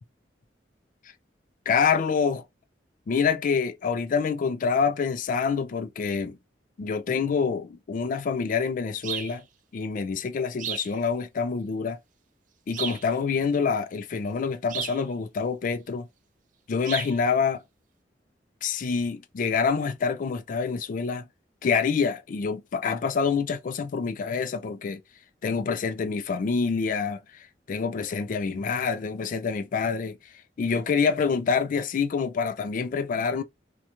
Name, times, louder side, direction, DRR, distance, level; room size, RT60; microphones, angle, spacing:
voice 1, 1.7-2.4 3.1-6.4 6.8-9.4 9.7-12.0 12.7-16.1 16.7-17.6 18.6-21.3 21.6-25.0 25.4-27.2 27.7-30.2 30.6-33.4, left 5 dB, 50° left, 0.4 m, -26 dB
sound 1, 9.0-9.4 10.6-10.9 12.7-13.1 14.7-15.0 16.8-17.2, right 9 dB, 45° right, 0.4 m, -33 dB
2.9 x 2.2 x 2.4 m
head